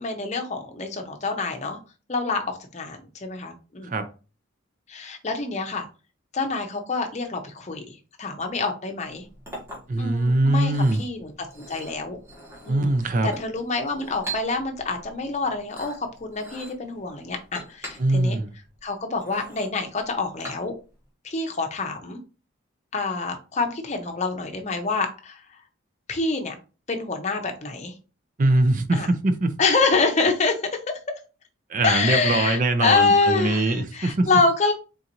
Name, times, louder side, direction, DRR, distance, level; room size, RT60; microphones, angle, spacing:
voice 1, 0.0-1.8 2.1-3.9 4.9-5.9 6.3-9.2 10.0-10.7 11.0-12.2 12.7-12.9 13.2-18.4 18.8-20.7 21.2-22.2 22.9-25.4 26.1-26.5 26.9-27.9 28.9-29.1 29.6-30.8 31.8-34.7, left 3 dB, 35° left, 0.7 m, -26 dB
Chink clink, 9.0-21.0, right 2 dB, 15° right, 1.3 m, -43 dB
voice 2, 9.9-11.0 12.7-13.3 18.0-18.5 28.4-29.5 31.7-34.3, right 2 dB, 40° right, 0.4 m, -22 dB
3.9 x 3.7 x 2.9 m
head